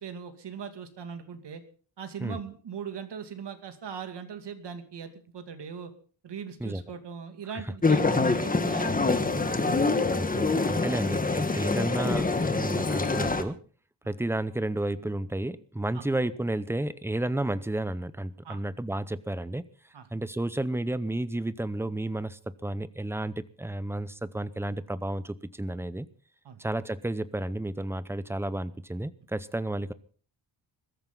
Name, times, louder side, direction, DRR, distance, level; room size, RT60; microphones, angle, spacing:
voice 1, 0.0-1.6 2.0-5.9 6.2-9.9 10.4-10.7 14.0-14.1 15.9-16.0 18.4-18.6 19.9-20.1 26.4-26.6, right 7 dB, 60° right, 8 dB, 2.6 m, -40 dB
sound 1, 7.8-13.4, left 3 dB, 20° left, 1.5 m, -25 dB
voice 2, 10.1-13.6 14.1-19.7 20.1-26.1 26.6-29.9, right 1 dB, 5° right, 15 dB, 0.7 m, -32 dB
22.0 x 13.5 x 3.9 m, 0.40 s
wide cardioid pair, 150°, 46 cm